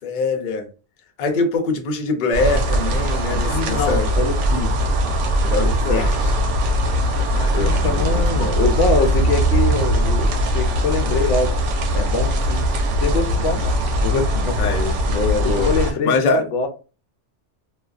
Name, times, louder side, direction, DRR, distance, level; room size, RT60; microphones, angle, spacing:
voice 1, 0.0-0.7 1.2-4.1 5.4-6.1 7.5-8.6 14.6-15.7 16.1-16.4, left 3 dB, 55° left, 0.6 m, -23 dB
sound 1, 2.3-15.9, equal, 85° right, 0.9 m, -20 dB
voice 2, 3.3-4.8 5.6-6.1 7.3-11.6 11.9-12.7 13.0-13.7 14.0-14.7 15.4-16.7, left 4 dB, 90° left, 0.9 m, -24 dB
2.4 x 2.2 x 2.3 m
omnidirectional pair, 1.2 m